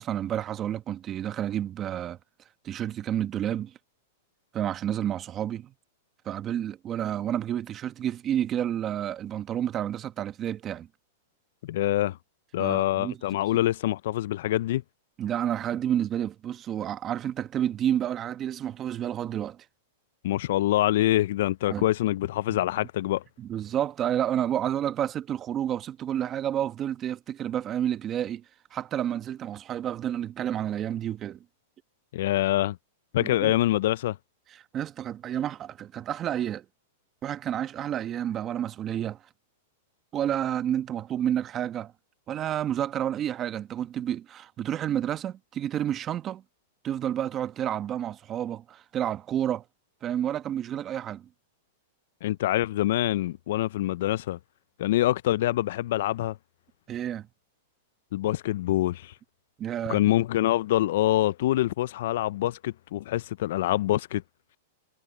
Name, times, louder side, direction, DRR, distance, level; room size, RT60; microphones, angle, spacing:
voice 1, 0.0-2.2 2.6-3.7 4.5-5.7 6.2-10.9 12.6-13.2 15.2-19.6 21.7-21.8 22.5-22.6 23.4-28.4 28.7-31.4 33.2-33.6 34.5-36.6 37.2-39.2 40.1-41.9 42.3-46.4 46.8-49.6 50.0-51.3 56.9-57.3 59.6-60.0, right 10 dB, 30° right, 1.3 m, -30 dB
voice 2, 11.6-12.2 12.5-14.8 20.2-23.2 32.1-32.8 33.1-34.2 52.2-54.4 54.8-56.4 58.1-59.1 59.9-64.2, left 14 dB, 65° left, 0.4 m, -25 dB
hypercardioid pair, 130°, 0 cm